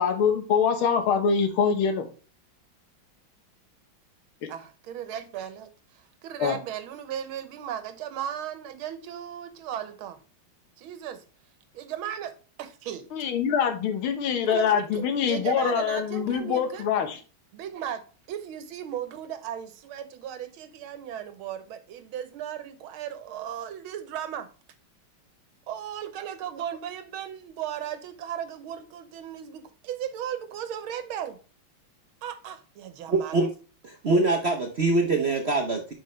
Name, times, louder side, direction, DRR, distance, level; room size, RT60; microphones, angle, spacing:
voice 1, 0.0-2.1 6.4-6.6 13.1-17.2, left 7 dB, 85° left, 1.9 m, -24 dB
voice 2, 4.5-10.2 10.8-11.2 11.7-12.3 12.6-13.0 14.5-16.9 17.5-18.0 18.3-24.5 25.7-31.4 32.2-33.4, right 10 dB, 85° right, 1.7 m, -36 dB
voice 3, 33.1-33.5 33.8-35.9, right 3 dB, 55° right, 0.7 m, -24 dB
7.8 x 5.4 x 3.2 m
omnidirectional pair, 2.2 m